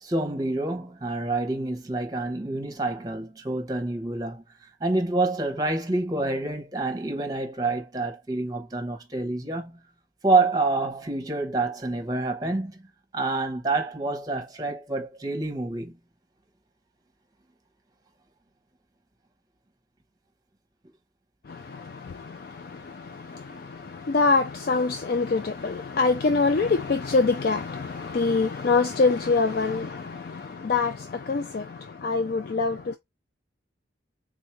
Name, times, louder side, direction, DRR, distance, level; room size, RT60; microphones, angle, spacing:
voice 1, 0.0-4.4 4.8-9.8 10.2-12.8 13.1-15.9, right 2 dB, 20° right, 0.9 m, -27 dB
voice 2, 21.5-32.9, left 4 dB, 50° left, 0.4 m, -25 dB
3.7 x 2.6 x 4.4 m
head